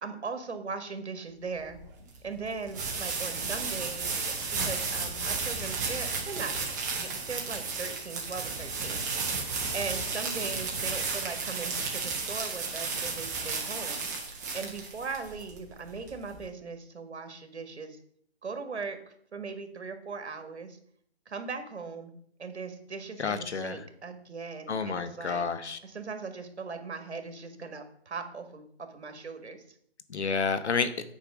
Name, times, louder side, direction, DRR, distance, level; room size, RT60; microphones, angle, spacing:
voice 1, 0.0-1.8 2.2-6.6 6.9-18.0 18.4-19.0 19.3-20.8 21.3-22.1 22.4-25.4 25.8-29.6, right 4 dB, 80° right, 8 dB, 1.8 m, -39 dB
sound 1, 1.6-16.4, right 4 dB, 15° right, 1.0 m, -33 dB
voice 2, 23.2-23.8 24.7-25.8 30.1-30.9, left 5 dB, 80° left, 11 dB, 1.2 m, -30 dB
9.3 x 4.5 x 6.0 m, 0.66 s
hypercardioid pair, 165°, 33 cm